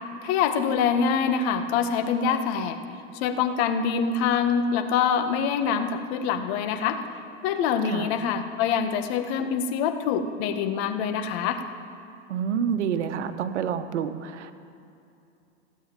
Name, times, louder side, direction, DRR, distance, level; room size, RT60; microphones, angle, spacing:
voice 1, 0.2-2.8 3.1-7.0 7.4-11.6, left 6 dB, 60° left, 7 dB, 1.6 m, -25 dB
voice 2, 12.3-14.5, right 8 dB, 85° right, 9 dB, 1.2 m, -28 dB
16.5 x 8.6 x 9.1 m, 2.6 s
hypercardioid pair, 110°, 35 cm